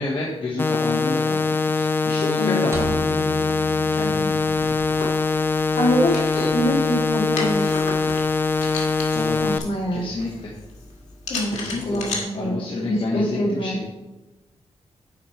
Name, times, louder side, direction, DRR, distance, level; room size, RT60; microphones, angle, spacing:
voice 1, 0.0-1.4 1.7-2.9 3.9-4.4 9.1-9.6 9.9-10.5 11.5-13.7, left 2 dB, 50° left, -4 dB, 1.2 m, -29 dB
sound 1, 0.6-9.6, left 4 dB, 20° left, 0.3 m, -22 dB
sound 2, 2.7-5.0, right 2 dB, 25° right, 1.3 m, -33 dB
sound 3, 4.3-12.2, left 3 dB, 90° left, 1.9 m, -34 dB
voice 2, 5.8-8.0 9.4-10.1 11.3-13.8, equal, 70° left, -3 dB, 2.4 m, -25 dB
7.3 x 5.3 x 4.5 m, 1.1 s
wide cardioid pair, 135°, 11 cm